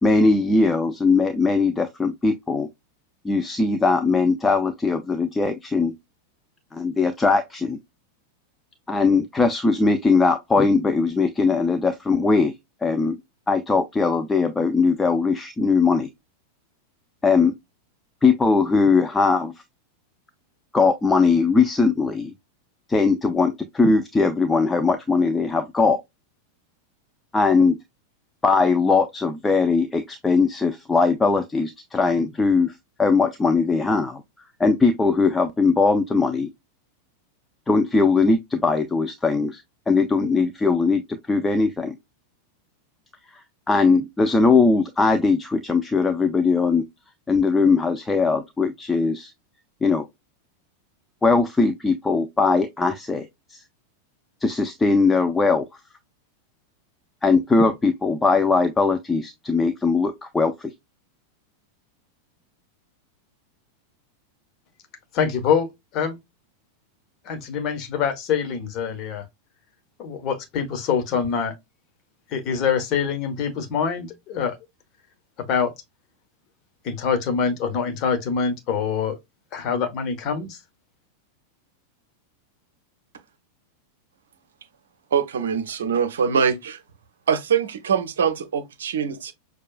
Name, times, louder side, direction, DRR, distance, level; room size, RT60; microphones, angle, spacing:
voice 1, 0.0-2.7 3.2-5.9 6.7-7.8 8.9-12.5 12.8-13.2 13.5-16.1 17.2-17.5 18.2-19.5 20.7-22.3 22.9-26.0 27.3-27.8 28.4-32.7 33.0-34.2 34.6-36.5 37.7-41.9 43.3-46.8 47.3-49.3 49.8-50.0 51.2-53.6 54.4-55.7 57.2-60.7, left 4 dB, 10° left, 0.5 m, -20 dB
voice 2, 65.1-66.2 67.2-69.2 70.0-71.5 72.3-74.6 75.5-75.7 76.8-79.2 79.5-80.6, left 6 dB, 40° left, 1.2 m, -25 dB
voice 3, 85.1-86.8 87.3-89.3, right 7 dB, 65° right, 0.7 m, -23 dB
6.4 x 2.3 x 2.4 m
figure-of-eight pair, 90°, 0 cm